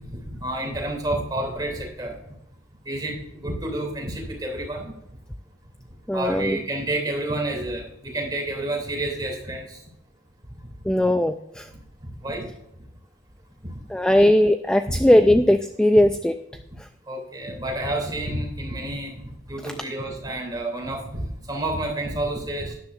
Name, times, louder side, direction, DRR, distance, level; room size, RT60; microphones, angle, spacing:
voice 1, 0.3-2.2 2.8-4.9 6.1-9.8 12.0-12.5 14.9-15.0 15.3-15.4 17.1-19.1 19.5-22.7, right 1 dB, 20° right, 0 dB, 2.8 m, -29 dB
voice 2, 6.1-6.6 10.9-11.7 13.9-16.3, left 1 dB, 5° left, 8 dB, 0.3 m, -18 dB
12.0 x 10.5 x 2.5 m, 0.83 s
head